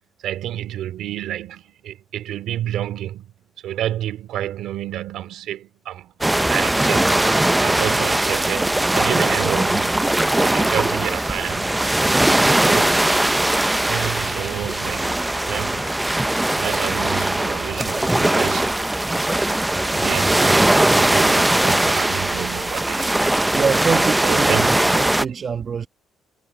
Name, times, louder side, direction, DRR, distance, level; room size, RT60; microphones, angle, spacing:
voice 1, 0.2-3.3 3.6-11.9 12.6-13.1 13.9-16.1 16.5-18.9 19.8-23.2 24.2-24.7, right 12 dB, 80° right, 2.9 m, -29 dB
sound 1, 6.2-25.3, right 1 dB, 10° right, 0.5 m, -20 dB
voice 2, 23.5-24.5 24.9-25.9, right 6 dB, 45° right, 1.3 m, -24 dB
cardioid pair, 90°, 0 cm